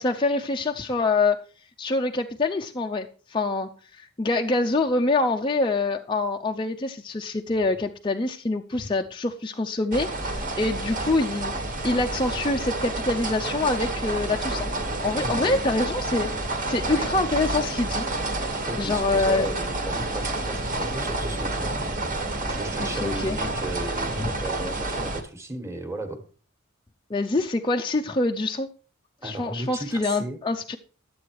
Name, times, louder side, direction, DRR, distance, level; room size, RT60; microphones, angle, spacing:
voice 1, 0.0-1.4 1.8-3.7 4.0-11.5 11.8-14.7 15.0-16.3 16.6-18.0 18.8-19.5 22.8-23.4 24.2-24.3 27.1-28.7 29.2-30.8, left 2 dB, 20° left, 0.5 m, -25 dB
sound 1, 9.9-25.2, right 2 dB, 40° right, 1.4 m, -29 dB
voice 2, 15.2-15.5 18.7-21.8 22.4-26.2 29.2-30.4, right 2 dB, 15° right, 1.4 m, -35 dB
12.0 x 7.8 x 4.7 m
head